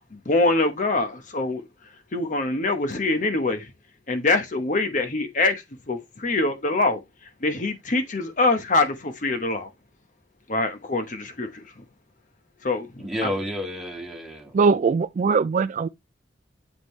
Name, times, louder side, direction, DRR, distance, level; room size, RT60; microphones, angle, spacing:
voice 1, 0.0-1.6 2.1-3.7 4.1-7.0 7.4-9.7 10.5-11.6 12.6-13.3, left 2 dB, 45° left, 1.0 m, -24 dB
voice 2, 13.0-14.6, left 1 dB, ahead, 2.1 m, -31 dB
voice 3, 14.5-15.9, right 5 dB, 45° right, 0.3 m, -21 dB
7.5 x 5.0 x 3.1 m
head